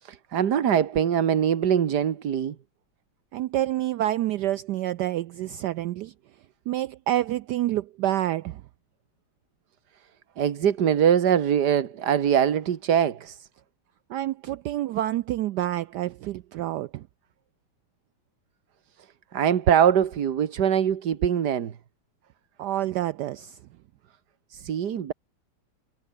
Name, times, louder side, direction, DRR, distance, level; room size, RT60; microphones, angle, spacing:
voice 1, 0.0-2.6 10.4-13.5 19.3-21.8 24.5-25.1, right 9 dB, 55° right, 1.7 m, -23 dB
voice 2, 3.3-6.1 6.7-8.6 14.1-17.1 22.6-23.6, right 13 dB, 75° right, 0.9 m, -28 dB
omnidirectional pair, 2.3 m